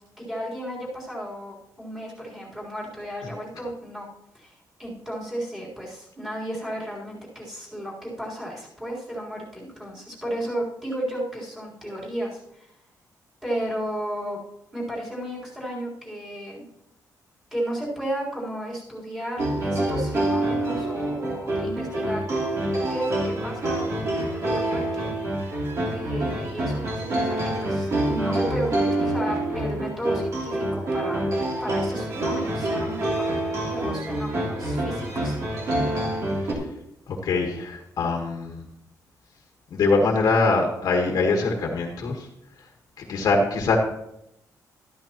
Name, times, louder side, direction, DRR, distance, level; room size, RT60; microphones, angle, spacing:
voice 1, 0.2-4.1 4.3-12.7 13.4-14.4 14.7-16.6 17.5-22.2 22.9-25.4 25.9-31.3 31.6-33.3 33.7-35.4, right 1 dB, 10° right, -6 dB, 3.8 m, -33 dB
sound 1, 19.4-36.5, right 1 dB, 45° right, 2.9 m, -26 dB
voice 2, 37.1-38.6 39.7-42.3 43.0-43.8, left 3 dB, 65° left, 2 dB, 1.5 m, -23 dB
12.5 x 12.0 x 3.0 m, 0.82 s
cardioid pair, 145°, 7 cm